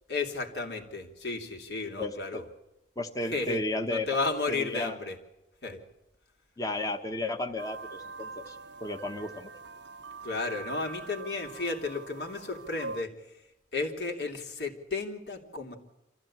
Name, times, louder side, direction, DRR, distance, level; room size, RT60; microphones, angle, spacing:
voice 1, 0.1-2.4 3.3-5.2 5.6-5.8 10.2-13.1 13.7-15.8, left 3 dB, 70° left, 3 dB, 3.3 m, -33 dB
voice 2, 2.0-2.4 3.0-4.1 4.5-5.0 6.6-8.6 8.8-9.5, left 2 dB, 20° left, 4 dB, 1.2 m, -33 dB
sound 1, 7.6-13.0, right 4 dB, 85° right, 0.8 m, -43 dB
26.5 x 15.5 x 8.8 m, 0.96 s
head